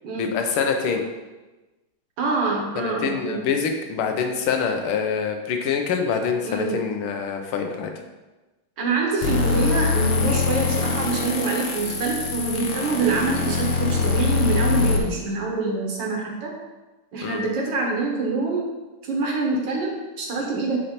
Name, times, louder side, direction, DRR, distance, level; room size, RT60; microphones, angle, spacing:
voice 1, 0.2-1.0 2.8-7.9 17.2-17.4, left 6 dB, 85° left, 5 dB, 1.6 m, -25 dB
voice 2, 2.2-3.4 6.4-6.8 8.8-16.5 17.1-18.7 19.0-20.8, right 3 dB, 65° right, -1 dB, 1.7 m, -25 dB
sound 1, 9.2-15.0, left 5 dB, 70° left, 1.6 m, -23 dB
8.1 x 3.2 x 4.3 m, 1.1 s
omnidirectional pair, 2.3 m